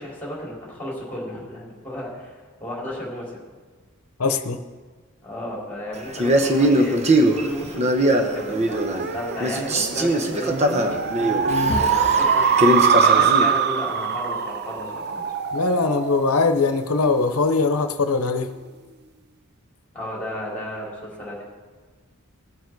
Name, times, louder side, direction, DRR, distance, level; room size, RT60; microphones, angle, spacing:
voice 1, 0.0-2.3 2.6-3.4 5.2-15.3 19.9-21.4, left 1 dB, 10° left, -6 dB, 4.1 m, -33 dB
voice 2, 4.2-4.6 11.5-11.8 15.5-18.5, left 4 dB, 80° left, 9 dB, 0.8 m, -21 dB
Male speech man speaking, 6.1-9.1 9.4-13.5, right 1 dB, 30° right, 1.0 m, -21 dB
sound 1, 8.4-17.2, right 6 dB, 50° right, 0.6 m, -23 dB
19.5 x 7.3 x 4.7 m, 1.4 s
head